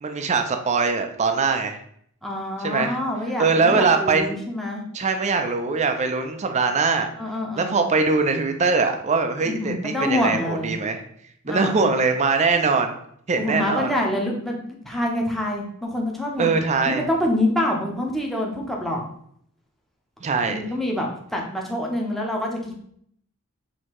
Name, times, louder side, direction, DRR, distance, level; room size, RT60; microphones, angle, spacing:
voice 1, 0.0-1.8 2.6-3.0 3.4-4.3 4.9-7.1 7.6-11.0 11.5-13.0 13.3-13.9 16.4-17.0 20.2-20.6, right 4 dB, 30° right, 6 dB, 0.4 m, -22 dB
voice 2, 2.2-4.8 7.2-7.8 9.4-10.7 11.4-11.8 13.3-16.5 16.9-19.0 20.4-22.7, left 1 dB, ahead, -1 dB, 0.7 m, -26 dB
6.2 x 2.8 x 3.0 m, 0.66 s
head